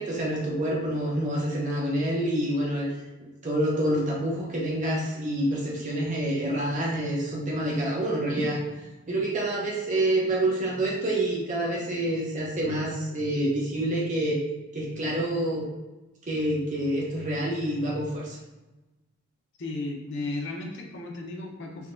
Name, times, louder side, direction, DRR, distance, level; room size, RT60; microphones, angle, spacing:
voice 1, 0.0-2.9 3.2-8.6 9.1-14.4 14.7-15.7 16.3-18.4, right 1 dB, 35° right, -3 dB, 0.7 m, -27 dB
voice 2, 19.6-21.9, left 2 dB, 55° left, 0 dB, 0.7 m, -34 dB
3.6 x 2.8 x 2.5 m, 1.1 s
head